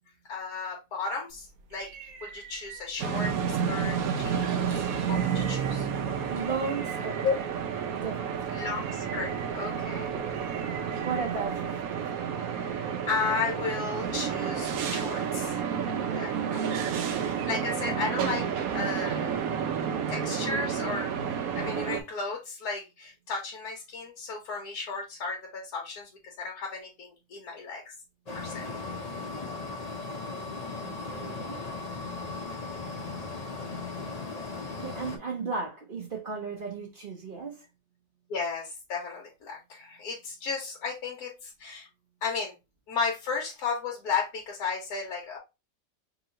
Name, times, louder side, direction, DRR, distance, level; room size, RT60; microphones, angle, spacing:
voice 1, 0.3-1.9 2.2-5.9 7.2-7.3 8.5-10.1 12.5-15.6 16.1-16.8 17.2-19.2 20.1-21.1 21.5-27.9 28.3-28.7 38.3-41.9 42.2-42.5 42.9-45.4, left 4 dB, 75° left, 1.2 m, -34 dB
sound 1, 1.3-11.9, right 7 dB, 85° right, 1.2 m, -48 dB
sound 2, 3.0-22.0, right 7 dB, 70° right, 1.0 m, -30 dB
voice 2, 6.2-7.2 8.0-8.4 10.1-10.3 11.0-11.8 30.8-31.6 34.8-37.6, right 4 dB, 45° right, 0.7 m, -35 dB
sound 3, 28.3-35.2, left 3 dB, 60° left, 0.4 m, -37 dB
3.0 x 3.0 x 3.7 m
omnidirectional pair, 1.7 m